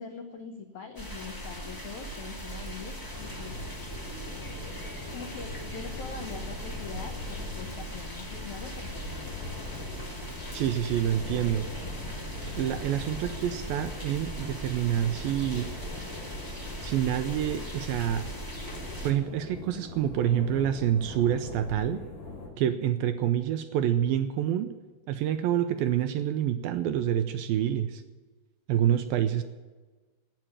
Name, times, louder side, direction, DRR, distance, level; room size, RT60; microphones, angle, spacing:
voice 1, 0.0-3.9 5.1-9.1, left 5 dB, 85° left, 4 dB, 1.6 m, -43 dB
sound 1, 0.9-19.1, right 1 dB, 20° left, 0.5 m, -39 dB
sound 2, 3.1-22.5, left 3 dB, 60° left, 5.7 m, -42 dB
voice 2, 10.5-11.7 12.6-15.7 16.8-18.3 19.0-22.0 22.6-24.7 25.1-28.0 28.7-29.4, right 10 dB, 80° right, 9 dB, 2.2 m, -27 dB
12.0 x 8.9 x 9.9 m, 1.3 s
omnidirectional pair, 4.7 m